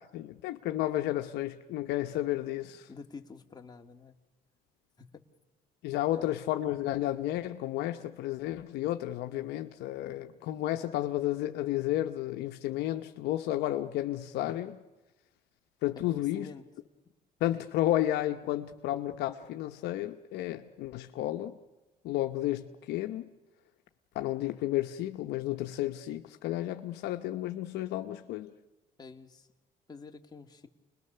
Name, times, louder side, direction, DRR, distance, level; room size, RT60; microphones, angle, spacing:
voice 1, 0.0-2.9 5.8-14.8 15.8-16.5 17.4-21.6 22.0-23.3 24.1-28.5, left 14 dB, 80° left, 0.9 m, -32 dB
voice 2, 2.9-4.2 5.0-5.2 6.1-6.3 16.1-16.7 29.0-29.5 29.9-30.7, left 4 dB, 25° left, 1.9 m, -47 dB
29.5 x 21.0 x 6.8 m
cardioid pair, 110°, 17 cm